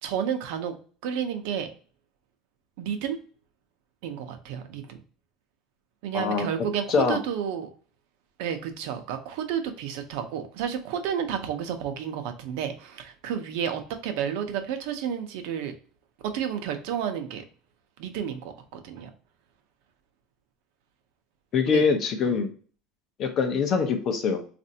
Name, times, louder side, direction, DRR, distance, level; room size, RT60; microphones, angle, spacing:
voice 1, 0.0-0.7 1.0-1.7 2.8-3.2 4.0-5.0 6.0-7.7 8.4-15.7 16.2-17.4 18.0-19.1 21.7-21.9 22.2-22.3, right 8 dB, 70° right, 7 dB, 0.6 m, -31 dB
voice 2, 6.1-7.2 21.5-22.5 23.2-24.4, left 5 dB, 35° left, 6 dB, 0.6 m, -24 dB
4.2 x 2.5 x 2.7 m, 0.41 s
cardioid pair, 170°, 0 cm